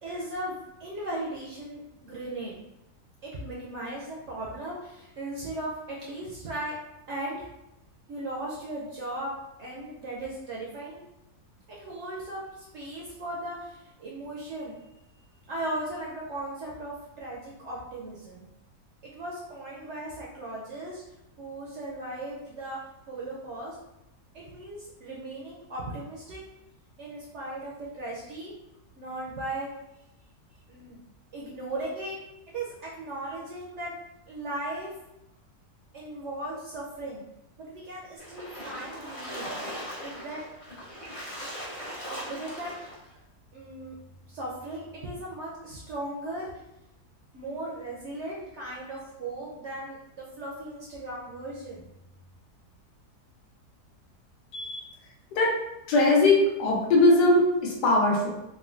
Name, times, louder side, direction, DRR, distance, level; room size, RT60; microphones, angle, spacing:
voice 1, 0.0-2.6 3.2-6.8 7.1-7.5 8.1-9.3 9.6-11.0 11.7-14.8 15.5-18.5 19.0-21.0 21.4-22.8 23.1-23.8 24.3-26.4 27.0-28.5 29.0-29.7 30.7-31.0 31.3-32.2 32.5-33.9 34.3-34.9 35.9-37.3 37.6-39.5 40.0-40.4 42.0-42.7 43.5-43.9 44.3-46.5 47.3-51.8, right 1 dB, 70° right, -4 dB, 0.6 m, -37 dB
Splash splatter, 38.2-43.0, equal, 55° left, 0.3 m, -39 dB
voice 2, 54.5-54.9 55.3-55.5 55.9-58.3, left 2 dB, 90° left, -2 dB, 1.3 m, -21 dB
3.5 x 2.0 x 2.5 m, 0.90 s
omnidirectional pair, 1.7 m